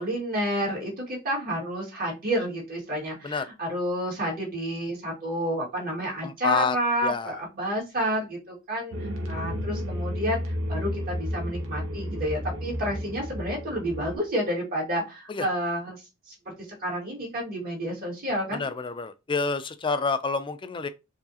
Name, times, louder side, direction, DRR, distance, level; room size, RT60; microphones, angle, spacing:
voice 1, 0.0-16.0 16.3-16.4 16.8-18.7, equal, 45° right, 2.0 m, -30 dB
voice 2, 6.2-6.8 7.0-7.3 15.3-15.5 18.5-20.9, left 4 dB, 25° left, 0.4 m, -28 dB
sound 1, 8.9-14.2, equal, 80° right, 1.0 m, -32 dB
4.6 x 2.9 x 2.8 m
head